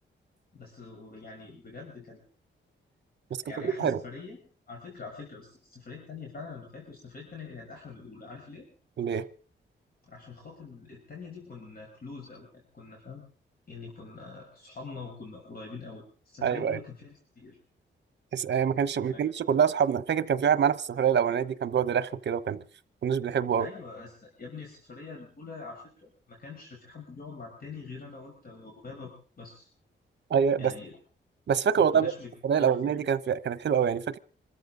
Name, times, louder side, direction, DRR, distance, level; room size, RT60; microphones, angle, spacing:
voice 1, 0.5-2.2 3.4-4.4 4.7-8.7 10.0-13.2 13.7-17.6 18.9-19.2 23.6-29.7 30.6-31.0 31.7-33.0, left 4 dB, 50° left, 0 dB, 5.9 m, -44 dB
voice 2, 3.6-4.0 9.0-9.2 16.4-16.8 18.3-22.6 23.0-23.7 30.3-30.7 31.5-32.1 32.4-34.2, right 7 dB, 60° right, 15 dB, 1.0 m, -25 dB
26.5 x 14.0 x 3.9 m, 0.40 s
wide cardioid pair, 110°, 20 cm